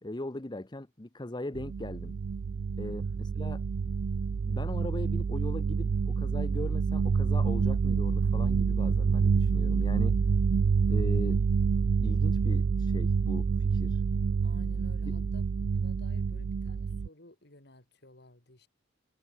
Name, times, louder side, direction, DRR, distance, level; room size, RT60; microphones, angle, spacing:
voice 1, 0.0-2.1 2.8-3.6 4.4-10.2 10.9-11.4 12.0-14.0, left 1 dB, 25° left, 0.9 m, -39 dB
sound 1, 1.6-17.1, right 5 dB, 85° right, 0.4 m, -27 dB
voice 2, 2.8-3.2 14.4-18.7, left 1 dB, 60° left, 3.9 m, -55 dB
head